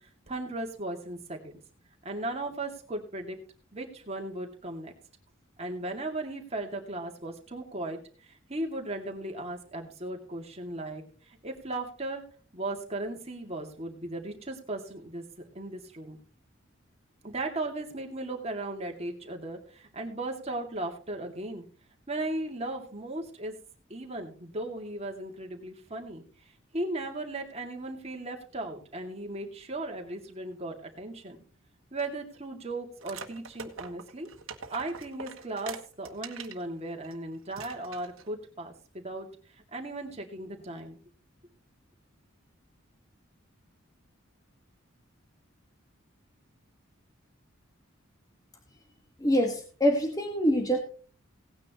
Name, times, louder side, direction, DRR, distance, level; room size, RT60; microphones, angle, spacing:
voice 1, 0.3-1.5 2.0-3.4 3.7-4.9 5.6-12.2 12.5-15.2 15.5-16.2 17.2-21.6 22.1-23.5 23.9-26.2 26.7-31.4 31.9-34.3 34.7-39.3 39.7-41.0, right 2 dB, 30° right, 2 dB, 2.4 m, -36 dB
sound 1, 33.0-36.6 37.0-37.2 37.5-38.3, right 5 dB, 85° right, 1.5 m, -43 dB
voice 2, 49.2-50.8, equal, 20° left, 2 dB, 1.7 m, -25 dB
18.0 x 9.6 x 3.0 m, 0.39 s
head